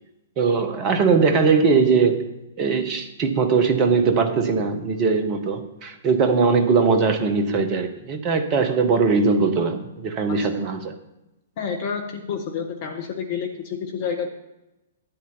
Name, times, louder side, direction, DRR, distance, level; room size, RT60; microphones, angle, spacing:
voice 1, 0.4-2.3 2.6-10.9, right 5 dB, 30° right, 8 dB, 1.5 m, -20 dB
voice 2, 11.6-14.3, left 6 dB, 40° left, 4 dB, 1.3 m, -29 dB
12.0 x 9.1 x 4.2 m, 0.96 s
figure-of-eight pair, 110°, 0 cm